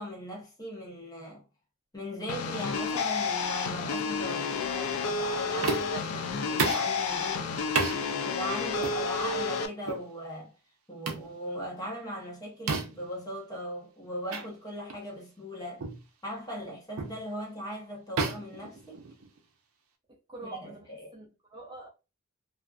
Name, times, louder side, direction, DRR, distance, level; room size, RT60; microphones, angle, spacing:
voice 1, 0.0-1.4 1.9-7.5 8.2-10.5 10.9-15.9 16.2-19.0 20.4-21.1, equal, 20° left, 0.7 m, -39 dB
sound 1, 2.3-9.7, left 4 dB, 85° left, 0.4 m, -31 dB
sound 2, 5.6-6.1 6.6-6.9 7.8-8.0 8.8-9.0 9.9-10.1 11.1-11.3 12.7-13.1 14.3-14.5 14.9-15.1 15.8-16.0 17.0-17.2 18.2-19.4, right 4 dB, 80° right, 0.5 m, -31 dB
voice 2, 8.6-8.9 18.3-18.5 20.1-20.9 21.1-21.9, right 2 dB, 20° right, 0.6 m, -46 dB
2.5 x 2.4 x 2.3 m
head